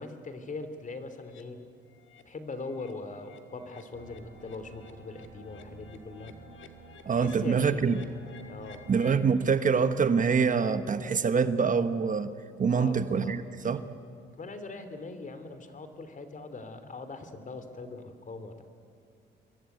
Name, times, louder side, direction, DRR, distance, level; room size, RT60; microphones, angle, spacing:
voice 1, 0.0-1.6 2.2-6.3 7.2-8.1 8.5-9.0 12.7-13.3 14.4-18.6, left 3 dB, 40° left, 10 dB, 3.0 m, -41 dB
sound 1, 1.3-1.4 1.9-2.2 2.6-9.3, left 6 dB, 75° left, 2.1 m, -53 dB
sound 2, 3.9-9.0, right 7 dB, 75° right, 4.0 m, -53 dB
voice 2, 7.0-8.0 8.9-12.3 12.6-13.9, right 5 dB, 40° right, 11 dB, 1.2 m, -25 dB
27.0 x 23.0 x 9.3 m, 2.3 s
cardioid pair, 90°, 20 cm